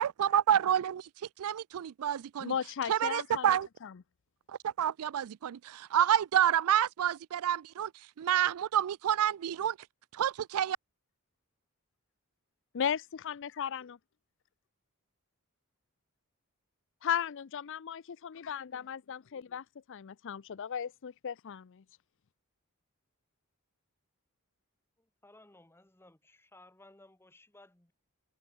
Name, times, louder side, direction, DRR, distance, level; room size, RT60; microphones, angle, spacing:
voice 1, 0.0-2.5 2.9-3.7 4.5-9.8 10.1-10.8, right 10 dB, 75° right, 0.4 m, -29 dB
voice 2, 2.4-3.5 12.7-14.0 17.0-21.8, left 8 dB, 55° left, 0.5 m, -36 dB
voice 3, 25.2-27.9, left 2 dB, 10° left, 1.3 m, -58 dB
head